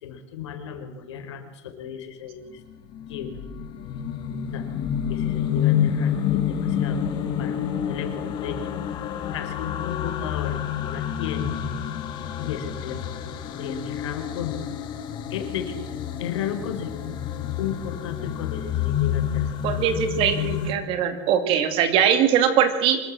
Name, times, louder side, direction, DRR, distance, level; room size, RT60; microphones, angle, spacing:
voice 1, 0.0-2.6 3.0-4.0 4.5-4.7 5.1-7.0 7.4-8.6 9.3-11.5 12.4-14.6 15.3-15.8 16.2-17.2 17.6-19.5, left 8 dB, 90° left, 8 dB, 3.9 m, -34 dB
sound 1, 2.7-20.7, left 9 dB, 30° left, 2.0 m, -28 dB
voice 2, 19.6-23.0, right 8 dB, 40° right, 8 dB, 2.6 m, -21 dB
25.0 x 14.0 x 7.5 m, 1.1 s
supercardioid pair, 160°, 14 cm